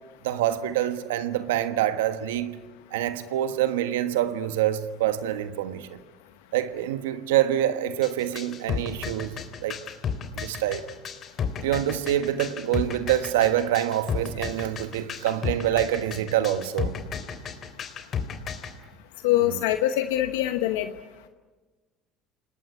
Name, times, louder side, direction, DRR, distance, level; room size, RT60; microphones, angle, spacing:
voice 1, 0.2-2.6 2.9-6.0 6.5-9.8 10.3-10.8 11.6-16.9 19.4-19.6, right 12 dB, 85° right, 1.4 m, -26 dB
sound 1, 8.0-18.7, left 7 dB, 45° left, 3.2 m, -32 dB
voice 2, 19.2-20.9, left 13 dB, 80° left, 1.1 m, -23 dB
28.0 x 20.5 x 9.7 m
hypercardioid pair, 85°, 0 cm